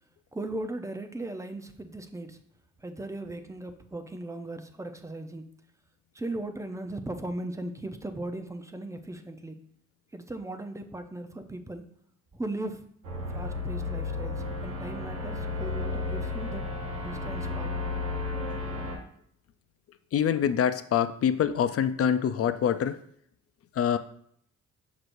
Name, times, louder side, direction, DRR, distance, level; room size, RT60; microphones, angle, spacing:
voice 1, 0.3-2.4 2.8-5.5 6.1-9.6 10.1-11.8 12.3-12.9 13.3-16.6 17.0-17.7, right 2 dB, 10° right, 7 dB, 0.7 m, -37 dB
sound 1, 13.0-19.0, left 3 dB, 85° right, 2.3 m, -33 dB
voice 2, 20.1-23.0 23.8-24.0, left 8 dB, 50° left, 11 dB, 0.5 m, -25 dB
6.4 x 6.1 x 2.6 m, 0.66 s
cardioid pair, 90°, 30 cm